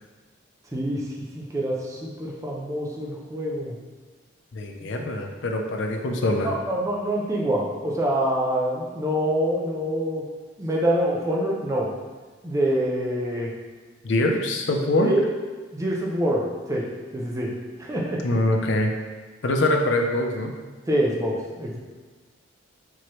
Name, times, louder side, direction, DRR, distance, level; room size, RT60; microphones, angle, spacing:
voice 1, 0.7-3.8 6.4-10.2 10.6-11.9 12.4-13.5 15.0-15.3 15.7-16.9 17.1-17.5 17.8-18.2 20.9-21.8, right 1 dB, 15° right, -3 dB, 0.5 m, -26 dB
voice 2, 4.5-6.5 14.0-15.1 18.2-18.9 19.4-20.5, left 1 dB, 65° left, 3 dB, 0.4 m, -23 dB
4.6 x 2.9 x 3.0 m, 1.4 s
head